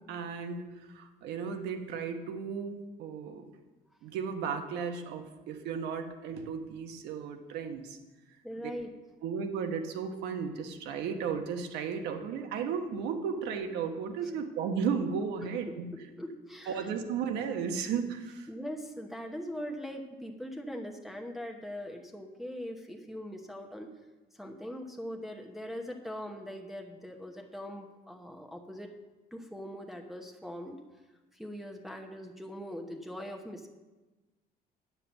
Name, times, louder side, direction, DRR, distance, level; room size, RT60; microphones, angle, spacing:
voice 1, 0.1-3.4 4.0-8.0 8.6-8.7 9.2-15.9 16.7-18.5, right 6 dB, 90° right, 5 dB, 1.2 m, -34 dB
voice 2, 8.4-8.9 14.2-14.3 15.9-16.9 18.5-23.9 24.3-28.9 29.3-30.8 31.3-33.7, equal, ahead, 1 dB, 1.0 m, -41 dB
9.2 x 5.9 x 7.0 m, 1.1 s
cardioid pair, 110°, 17 cm